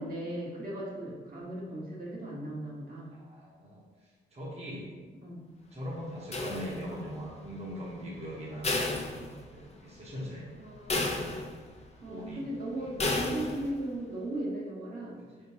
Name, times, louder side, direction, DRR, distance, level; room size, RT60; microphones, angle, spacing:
voice 1, 0.0-3.1 5.2-5.4 10.6-11.3 12.0-15.2, right 1 dB, 50° right, -5 dB, 1.2 m, -37 dB
voice 2, 3.1-3.8 4.3-5.0 5.7-10.5 12.1-12.4 12.8-13.0, equal, 35° right, -5 dB, 1.1 m, -41 dB
sound 1, 6.3-7.1 8.6-9.8 10.2-10.3 10.9-11.8 13.0-13.8, left 2 dB, 35° left, 0.7 m, -32 dB
4.1 x 3.6 x 2.8 m, 1.4 s
cardioid pair, 65°, 19 cm